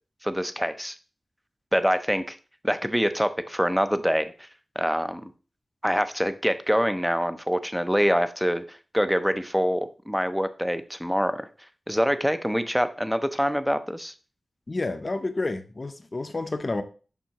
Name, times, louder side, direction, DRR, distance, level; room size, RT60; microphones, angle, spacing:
voice 1, 0.2-1.0 1.7-2.4 2.6-4.5 4.8-5.3 5.8-11.5 11.9-14.1, equal, ahead, 11 dB, 0.5 m, -25 dB
voice 2, 14.7-16.8, left 2 dB, 40° left, 8 dB, 0.7 m, -29 dB
7.2 x 5.4 x 3.0 m, 0.36 s
wide cardioid pair, 70°, 0 cm